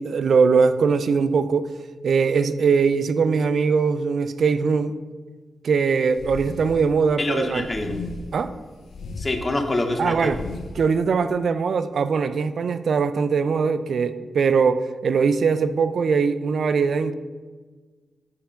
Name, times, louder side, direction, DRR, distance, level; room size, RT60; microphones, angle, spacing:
voice 1, 0.0-1.7 2.0-5.0 5.6-7.7 8.3-8.5 10.0-10.4 10.8-17.1, right 5 dB, 70° right, 12 dB, 0.3 m, -21 dB
sound 1, 6.1-6.9 7.4-8.4 8.8-9.3 9.9-10.8, left 3 dB, 75° left, 0.7 m, -36 dB
voice 2, 7.2-8.0 9.2-10.4, left 2 dB, 30° left, 5 dB, 0.7 m, -25 dB
5.6 x 4.7 x 5.0 m, 1.4 s
cardioid pair, 75°, 0 cm